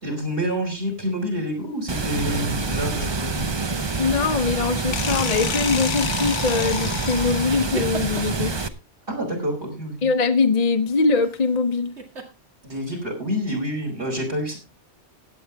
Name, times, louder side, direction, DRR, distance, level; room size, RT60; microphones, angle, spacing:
voice 1, 0.0-3.5 9.1-10.1 12.6-14.6, equal, 50° right, 5.1 m, -28 dB
Water, 1.9-8.7, right 3 dB, 25° right, 0.7 m, -27 dB
voice 2, 4.0-8.5 10.0-11.9, left 4 dB, 35° left, 0.9 m, -22 dB
sound 1, 4.9-7.8, left 7 dB, 75° left, 1.2 m, -30 dB
sound 2, 7.5-8.4 11.2-11.5 12.0-12.3, right 3 dB, 65° right, 2.4 m, -35 dB
16.5 x 9.2 x 3.4 m
omnidirectional pair, 1.2 m